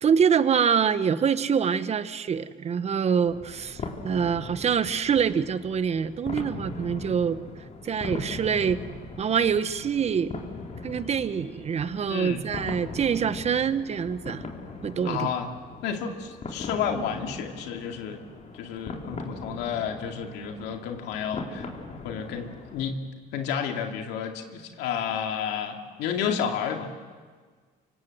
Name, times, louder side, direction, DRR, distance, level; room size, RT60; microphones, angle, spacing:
voice 1, 0.0-7.4 7.8-8.8 9.2-10.3 10.8-14.4 14.8-15.3, right 7 dB, 40° right, 13 dB, 1.1 m, -25 dB
sound 1, 3.2-22.9, left 3 dB, 45° left, 3.7 m, -40 dB
voice 2, 12.1-12.4 15.0-15.5 15.8-18.2 18.5-21.7 22.0-23.0 23.3-26.9, left 7 dB, 90° left, 4 dB, 2.3 m, -31 dB
26.0 x 24.5 x 7.8 m, 1.5 s
cardioid pair, 110°, 17 cm